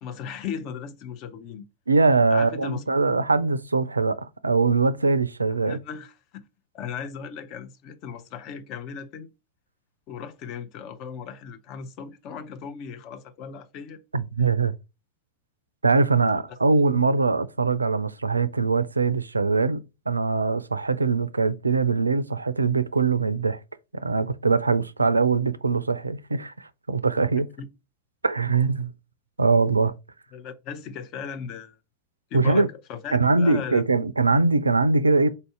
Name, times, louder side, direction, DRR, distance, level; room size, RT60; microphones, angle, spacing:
voice 1, 0.0-1.6 2.3-2.8 5.7-6.4 6.7-9.3 10.1-14.0 27.6-27.7 30.3-31.8 32.3-33.8, left 7 dB, 40° left, 0.6 m, -37 dB
voice 2, 1.9-5.8 14.1-14.7 15.8-23.6 23.9-27.5 28.2-28.9 29.4-29.9 32.3-32.7 33.1-35.3, right 4 dB, 80° right, 0.3 m, -22 dB
4.1 x 2.6 x 4.5 m
figure-of-eight pair, 90°, 0 cm